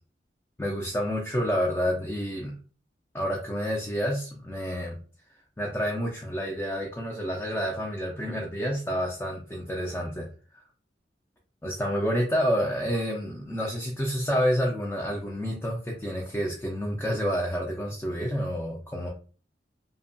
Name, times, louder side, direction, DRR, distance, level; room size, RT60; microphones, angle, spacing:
voice 1, 0.6-2.6 3.1-5.0 5.6-10.3 11.6-19.1, equal, 10° left, -2 dB, 0.4 m, -29 dB
2.8 x 2.1 x 2.6 m, 0.38 s
head